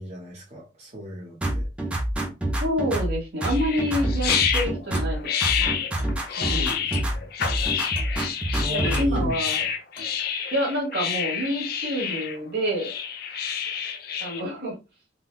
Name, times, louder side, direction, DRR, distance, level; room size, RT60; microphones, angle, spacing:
voice 1, 0.0-1.7 6.3-7.7 8.6-9.7, left 1 dB, 40° right, 1.1 m, -36 dB
sound 1, 1.4-3.2 3.4-5.2 5.4-7.2 7.4-9.3, right 1 dB, 5° right, 0.5 m, -27 dB
voice 2, 2.6-5.7 6.4-6.8 8.7-9.6 10.5-12.9 14.2-14.7, equal, 65° right, 1.4 m, -28 dB
sound 2, 3.4-14.4, left 8 dB, 60° left, 0.5 m, -28 dB
Clock, 4.9-5.2 6.0-6.2 6.9-7.2 8.0-8.2 8.9-9.1 9.9-10.2, left 2 dB, 35° left, 0.9 m, -42 dB
3.8 x 2.2 x 2.3 m
head